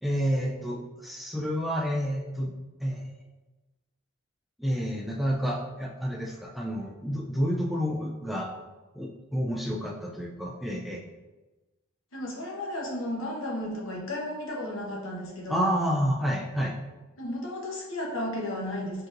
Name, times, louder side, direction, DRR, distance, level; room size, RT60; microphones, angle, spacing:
voice 1, 0.0-2.5 2.8-3.1 4.6-8.5 8.9-11.0 15.5-16.7, equal, ahead, -2 dB, 0.3 m, -29 dB
voice 2, 12.1-15.8 17.2-19.1, left 1 dB, 80° left, -3 dB, 1.1 m, -34 dB
4.5 x 3.7 x 2.5 m, 1.1 s
head